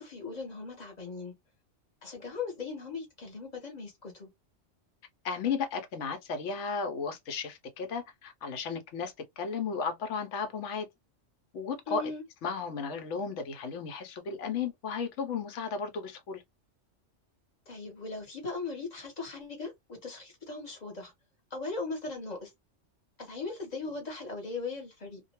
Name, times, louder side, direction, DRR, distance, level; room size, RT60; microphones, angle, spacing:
voice 1, 0.0-1.4 2.0-4.3 11.9-12.2 17.7-21.1 21.5-22.5 23.2-25.2, left 4 dB, 35° left, 1.0 m, -39 dB
voice 2, 5.2-10.9 11.5-12.0 12.4-16.4, left 5 dB, 75° left, 1.0 m, -34 dB
2.3 x 2.2 x 2.8 m
omnidirectional pair, 1.2 m